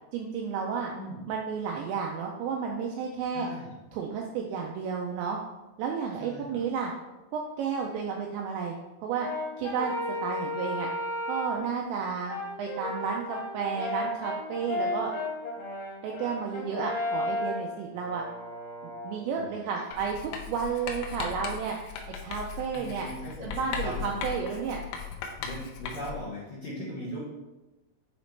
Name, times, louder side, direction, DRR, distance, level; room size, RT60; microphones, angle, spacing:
voice 1, 0.1-0.9 1.3-3.5 3.9-5.4 5.8-6.9 7.3-8.7 9.0-9.3 9.6-9.9 10.2-10.9 11.3-15.1 16.0-18.2 18.8-21.8 22.2-23.1 23.4-24.8, right 6 dB, 80° right, 0 dB, 2.6 m, -32 dB
voice 2, 3.3-3.7 6.2-6.6 19.4-19.8 22.7-24.2 25.4-27.2, equal, 65° left, -8 dB, 2.1 m, -39 dB
Brass instrument, 9.2-11.7 12.3-19.2, left 1 dB, 45° left, 3.1 m, -34 dB
Writing, 19.9-26.3, left 7 dB, 85° left, 2.6 m, -38 dB
9.0 x 4.0 x 3.2 m, 1.0 s
omnidirectional pair, 5.5 m